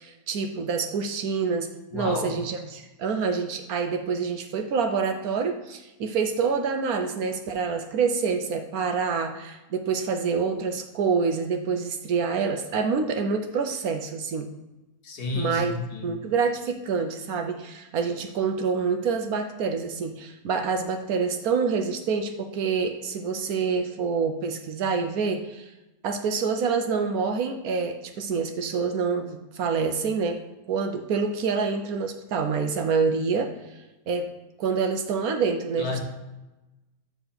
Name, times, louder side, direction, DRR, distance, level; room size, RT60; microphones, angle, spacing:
voice 1, 0.0-1.7 1.9-14.5 15.3-15.8 16.0-25.7 26.0-30.4 30.7-33.6 34.1-34.3 34.6-36.0, right 5 dB, 70° right, 6 dB, 1.0 m, -27 dB
voice 2, 1.9-2.4 15.0-16.1 35.8-36.0, left 3 dB, 65° left, 1 dB, 1.7 m, -31 dB
7.0 x 3.8 x 6.0 m, 1.0 s
omnidirectional pair, 1.8 m